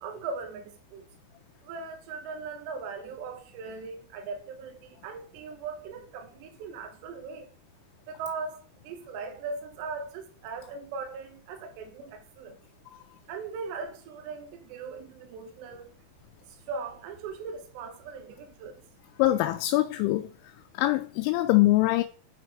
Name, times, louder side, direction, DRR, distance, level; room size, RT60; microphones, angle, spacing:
voice 1, 0.0-1.1 1.6-7.5 8.1-12.6 13.3-15.9 16.5-18.8, right 4 dB, 75° right, 3.2 m, -39 dB
voice 2, 19.2-20.3 20.7-22.0, left 17 dB, 85° left, 3.0 m, -23 dB
8.1 x 4.5 x 4.7 m
omnidirectional pair, 5.3 m